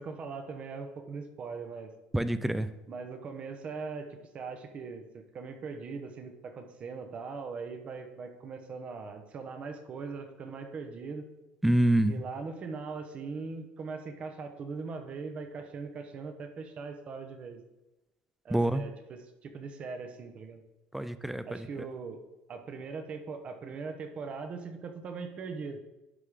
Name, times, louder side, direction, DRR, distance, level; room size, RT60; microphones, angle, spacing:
voice 1, 0.0-1.9 2.9-11.3 12.0-17.6 18.4-20.6 21.5-22.2 22.5-25.8, right 4 dB, 35° right, 7 dB, 0.9 m, -40 dB
voice 2, 2.1-2.7 11.6-12.2 18.5-18.8 20.9-21.6, right 1 dB, 5° right, 12 dB, 0.4 m, -26 dB
11.0 x 3.7 x 4.9 m, 1.0 s
cardioid pair, 155°, 4 cm